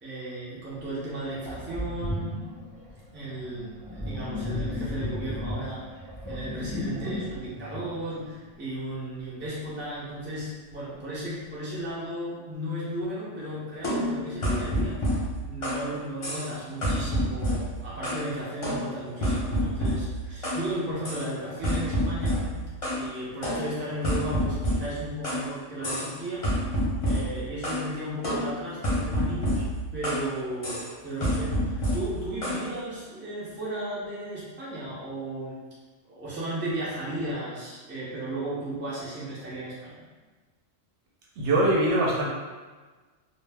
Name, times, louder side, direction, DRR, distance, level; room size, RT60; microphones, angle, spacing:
voice 1, 0.0-2.3 3.1-15.0 15.4-22.5 22.9-26.5 27.0-29.7 29.9-35.6 36.0-40.0, right 1 dB, 20° right, -8 dB, 0.3 m, -35 dB
Sink (filling or washing), 0.8-0.9 1.5-8.8, left 1 dB, 5° right, 0.9 m, -35 dB
sound 1, 13.8-15.9 16.2-16.5 16.8-18.3 18.6-20.7 21.0-21.3 21.6-23.1 23.4-25.5 25.8-26.2 26.4-27.9 28.2-30.3 30.6-30.9 31.2-32.6, equal, 35° left, 0.6 m, -28 dB
voice 2, 41.4-42.3, right 1 dB, 70° right, -4 dB, 0.8 m, -22 dB
2.1 x 2.1 x 3.3 m, 1.4 s
omnidirectional pair, 1.3 m